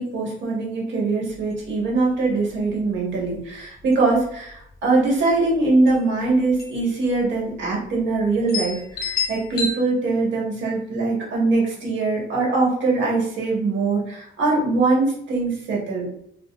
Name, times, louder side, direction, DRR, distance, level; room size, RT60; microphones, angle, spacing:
voice 1, 0.0-16.1, right 3 dB, 70° right, -3 dB, 1.5 m, -22 dB
sound 1, 1.4-1.5 1.8-1.9 2.4-2.7 3.3-3.5 3.8-4.5 5.5-5.6 5.9-6.0 6.6-6.9 7.2-7.3 8.0-8.1 8.5-9.7, left 4 dB, 50° left, 1.1 m, -29 dB
4.9 x 2.4 x 2.4 m, 0.70 s
cardioid pair, 90°, 20 cm